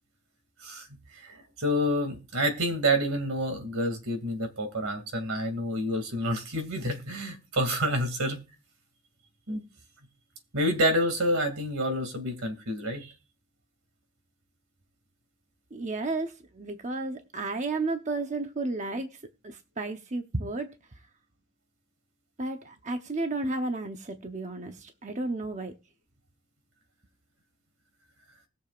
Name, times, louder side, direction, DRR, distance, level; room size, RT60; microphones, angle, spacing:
voice 1, 1.1-8.4 9.5-9.6 10.5-13.1, equal, 85° right, 7 dB, 2.5 m, -28 dB
voice 2, 15.7-19.2 19.4-20.8 22.4-25.7, right 2 dB, 35° right, 6 dB, 0.8 m, -32 dB
20.0 x 6.9 x 2.5 m, 0.29 s
head